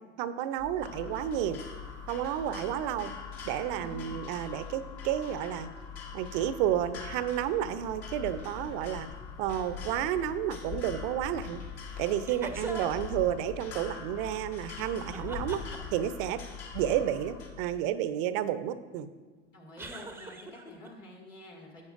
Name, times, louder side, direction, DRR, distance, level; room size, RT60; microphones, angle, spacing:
voice 1, 0.2-1.6 2.1-3.1 3.5-5.7 6.1-9.1 9.4-11.6 12.0-15.6 15.9-16.4 16.7-19.1, right 11 dB, 50° right, 12 dB, 0.6 m, -31 dB
sound 1, 0.6-17.8, left 8 dB, 30° left, 1.2 m, -47 dB
sound 2, 0.8-17.5, left 6 dB, 55° left, 1.9 m, -44 dB
voice 2, 3.7-4.2 12.5-12.9 19.5-21.8, left 1 dB, 85° left, -1 dB, 2.4 m, -48 dB
sound 3, 12.3-13.1 14.8-16.2 19.8-20.9, right 3 dB, 5° right, 0.6 m, -42 dB
12.0 x 8.3 x 2.5 m, 1.4 s
hypercardioid pair, 90°, 37 cm